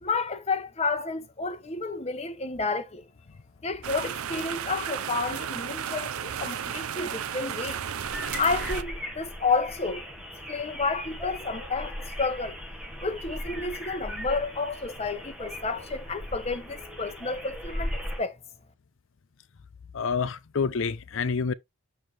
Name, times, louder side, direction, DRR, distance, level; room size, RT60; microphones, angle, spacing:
voice 1, 0.0-3.1 3.6-7.8 8.4-10.0 10.5-12.6 13.0-18.3, left 4 dB, 30° left, 0.9 m, -30 dB
sound 1, 3.8-8.8, right 8 dB, 85° right, 0.5 m, -33 dB
sound 2, 8.0-18.2, equal, 5° right, 1.4 m, -38 dB
voice 2, 19.9-21.5, left 5 dB, 60° left, 0.5 m, -28 dB
6.3 x 4.6 x 3.3 m
head